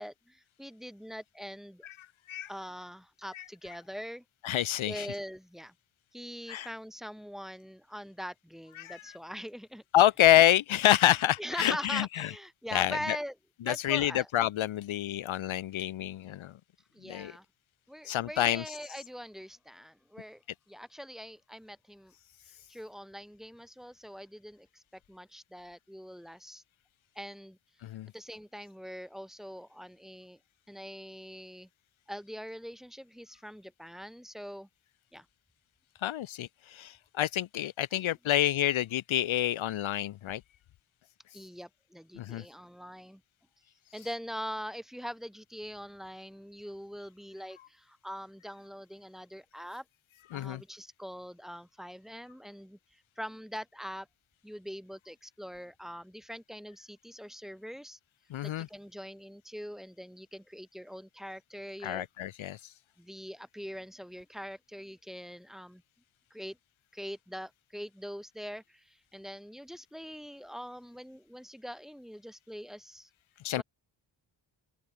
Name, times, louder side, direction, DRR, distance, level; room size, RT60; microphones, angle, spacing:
voice 1, 0.0-1.9 2.5-4.2 4.9-5.7 6.1-9.8 11.4-13.3 13.6-14.3 16.9-17.4 17.9-20.4 20.7-22.1 22.7-26.6 27.2-27.6 28.1-30.4 30.7-31.7 32.1-34.7 35.1-35.3 37.9-38.1 41.3-43.2 43.9-49.8 50.3-54.1 54.4-58.0 58.4-62.1 63.0-65.8 66.3-66.6 66.9-73.1 73.6-73.7, equal, ahead, 2.4 m, -43 dB
voice 2, 4.4-5.1 6.5-6.7 8.8-9.0 9.9-12.3 12.7-13.2 13.7-16.5 17.1-17.3 18.1-18.6 27.8-28.1 36.0-40.4 42.2-42.4 50.3-50.6 58.3-58.7 61.8-62.6 73.4-73.6, left 12 dB, 75° left, 0.6 m, -27 dB
open air
wide cardioid pair, 140°, 48 cm